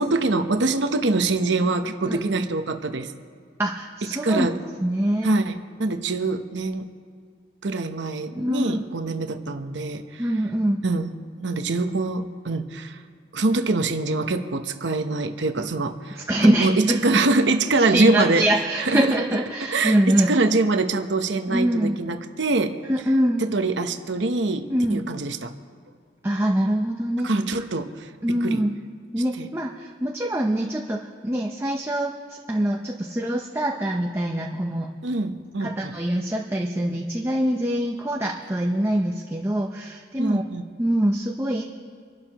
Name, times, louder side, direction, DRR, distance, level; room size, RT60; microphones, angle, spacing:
voice 1, 0.0-3.1 4.2-4.6 5.2-6.9 7.6-10.2 10.8-11.1 11.4-13.0 13.3-16.2 16.6-18.4 18.8-19.1 19.6-22.8 23.4-25.5 27.2-28.1 28.4-28.6 29.4-29.5 35.0-35.9 40.2-40.6, right 3 dB, 80° right, 7 dB, 0.9 m, -24 dB
voice 2, 3.6-4.5 4.8-5.3 8.3-8.8 10.2-10.8 16.3-17.1 17.8-20.3 21.5-22.0 22.9-23.4 24.7-25.0 26.2-27.3 28.2-28.7 29.1-34.9 35.6-40.4 40.8-41.6, right 1 dB, 15° right, 0 dB, 0.7 m, -24 dB
26.5 x 12.0 x 3.0 m, 2.2 s
head